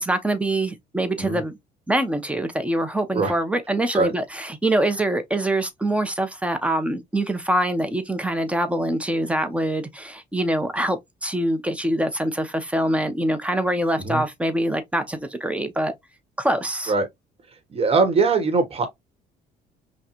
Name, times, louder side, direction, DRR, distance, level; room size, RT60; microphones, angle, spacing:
voice 1, 0.0-1.5 1.9-15.9 16.4-16.9, right 1 dB, 5° right, 0.9 m, -24 dB
voice 2, 17.7-18.9, right 4 dB, 35° right, 1.3 m, -21 dB
5.7 x 2.4 x 3.0 m
cardioid pair, 110°, 17 cm